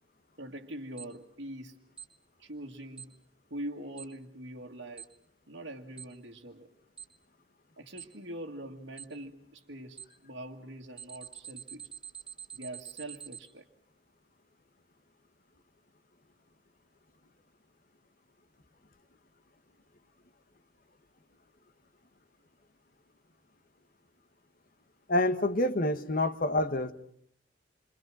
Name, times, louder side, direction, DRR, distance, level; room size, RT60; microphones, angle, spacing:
voice 1, 0.4-1.8 2.4-3.2 3.5-5.1 5.5-6.7 7.8-11.9 12.5-13.7, right 1 dB, 65° right, 1.8 m, -43 dB
Alarm, 1.0-1.1 2.0-2.1 3.0-3.1 4.0-4.1 5.0-5.1 6.0-6.1 7.0-7.1 8.0-8.1 9.0-9.1 10.0-10.1 11.0-13.4, right 8 dB, 5° right, 3.4 m, -44 dB
voice 2, 25.1-26.9, left 1 dB, 50° left, 1.3 m, -27 dB
28.5 x 25.0 x 6.2 m
head